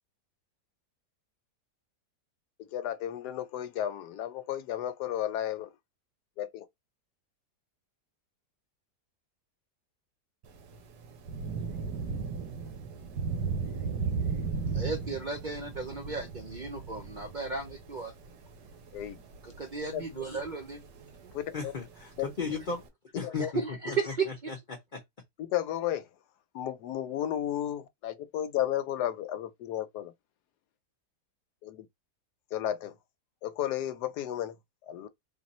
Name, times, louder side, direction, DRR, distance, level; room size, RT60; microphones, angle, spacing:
voice 1, 2.7-5.7 6.4-6.6 18.9-19.2 19.9-20.0 21.3-21.7 23.4-23.5 25.4-26.1 26.5-30.1 31.6-31.9 32.5-32.9 33.4-34.5 34.9-35.1, left 11 dB, 80° left, 1.1 m, -33 dB
Thunder / Rain, 10.4-22.9, right 5 dB, 90° right, 1.5 m, -37 dB
voice 2, 14.7-18.1 19.4-20.8 23.5-24.2, right 4 dB, 65° right, 0.4 m, -34 dB
voice 3, 21.5-22.8 23.1-24.0 24.3-25.0, left 4 dB, 40° left, 0.7 m, -36 dB
3.8 x 2.4 x 4.1 m
omnidirectional pair, 1.8 m